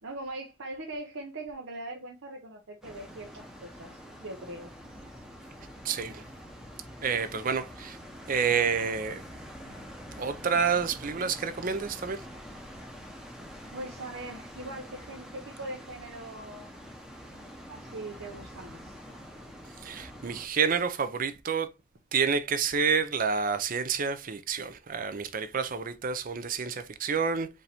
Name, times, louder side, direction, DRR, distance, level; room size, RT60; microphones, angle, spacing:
voice 1, 0.0-4.7 13.7-16.7 17.7-19.0, right 2 dB, 75° right, 0.8 m, -41 dB
sound 1, 2.8-20.5, equal, 5° right, 0.8 m, -46 dB
voice 2, 5.8-6.2 7.0-8.0 8.3-9.2 10.2-12.2 19.8-21.7 22.1-27.5, right 6 dB, 45° right, 0.5 m, -29 dB
5.3 x 2.7 x 3.4 m
head